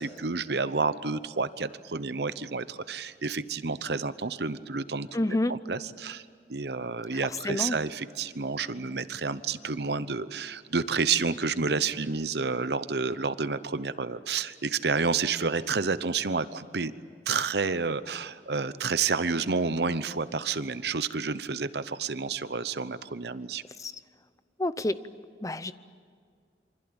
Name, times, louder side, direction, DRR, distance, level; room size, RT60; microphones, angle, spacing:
voice 1, 0.0-6.2 6.5-16.9 17.3-23.6, right 4 dB, 65° right, 14 dB, 0.9 m, -30 dB
voice 2, 5.1-5.5 7.4-7.8 23.8-23.9 24.6-25.0 25.4-25.7, left 1 dB, 20° left, 13 dB, 0.7 m, -28 dB
27.0 x 25.0 x 8.8 m, 2.1 s
head